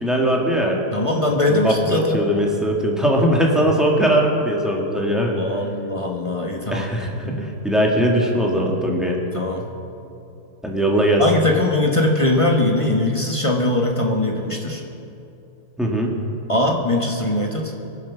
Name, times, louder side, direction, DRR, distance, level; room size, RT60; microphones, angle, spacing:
voice 1, 0.0-0.8 1.5-5.4 6.7-9.2 10.6-11.2 15.8-16.1, equal, ahead, -2 dB, 1.7 m, -20 dB
voice 2, 0.9-2.2 5.4-6.9 7.2-7.5 9.3-9.7 11.2-14.8 16.5-17.7, left 1 dB, 20° left, 0 dB, 1.1 m, -21 dB
22.5 x 7.7 x 5.9 m, 2.7 s
omnidirectional pair, 1.9 m